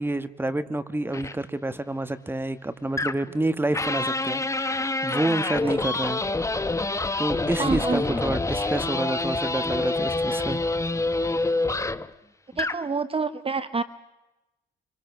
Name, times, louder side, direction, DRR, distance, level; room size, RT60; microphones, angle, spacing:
voice 1, 0.0-6.2 7.2-10.6, right 2 dB, 10° right, 12 dB, 1.5 m, -28 dB
sound 1, 1.1-1.4 3.0-3.4 3.7-12.1 12.5-12.9, left 2 dB, 15° left, 0.9 m, -27 dB
voice 2, 7.6-8.2 12.6-13.8, right 4 dB, 30° right, 12 dB, 0.9 m, -28 dB
25.5 x 24.0 x 6.1 m, 0.99 s
cardioid pair, 90°, 20 cm